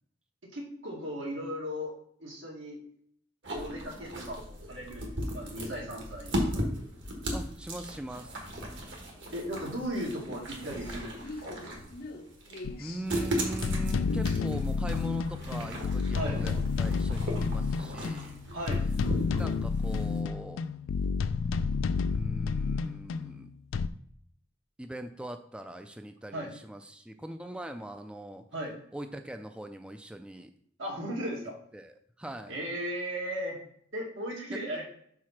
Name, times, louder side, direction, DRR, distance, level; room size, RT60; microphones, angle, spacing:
voice 1, 0.4-1.9 2.2-2.8 3.5-6.6 9.3-11.6 16.1-16.4 18.5-18.8 26.3-26.5 28.5-28.7 30.8-31.6 32.5-33.6 33.9-34.8, equal, 85° right, -2 dB, 1.9 m, -36 dB
sound 1, 3.4-20.2, equal, 65° right, 1.5 m, -37 dB
sound 2, 4.4-20.1, left 2 dB, 50° left, 0.6 m, -49 dB
voice 2, 7.3-8.5 12.8-18.4 19.4-20.6 22.1-23.5 24.8-28.4 28.9-30.5 31.7-32.6, right 1 dB, 5° right, 7 dB, 0.3 m, -41 dB
sound 3, 12.6-12.7 13.6-23.9, left 5 dB, 85° left, 0.3 m, -30 dB
4.7 x 4.2 x 5.8 m, 0.65 s
head